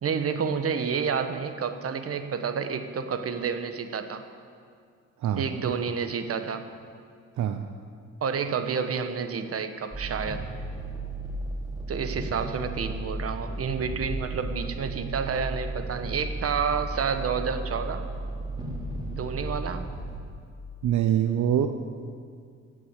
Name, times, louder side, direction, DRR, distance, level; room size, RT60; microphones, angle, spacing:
voice 1, 0.0-4.3 5.4-6.7 8.2-10.4 11.9-18.1 19.1-19.9, right 6 dB, 50° right, 9 dB, 1.2 m, -29 dB
sound 1, 9.9-20.2, right 2 dB, 15° right, 3.7 m, -34 dB
voice 2, 20.8-21.7, right 10 dB, 70° right, 7 dB, 0.8 m, -24 dB
16.0 x 8.9 x 8.2 m, 2.2 s
cardioid pair, 90°, 30 cm